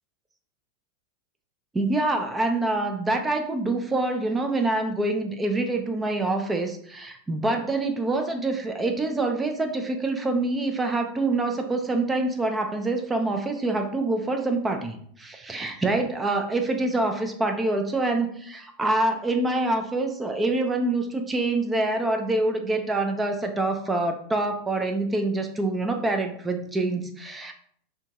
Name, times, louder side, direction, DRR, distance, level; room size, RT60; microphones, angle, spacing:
voice 1, 1.7-27.5, right 2 dB, 15° right, 5 dB, 0.4 m, -26 dB
2.8 x 2.3 x 2.7 m, 0.63 s
hypercardioid pair, 100°, 0 cm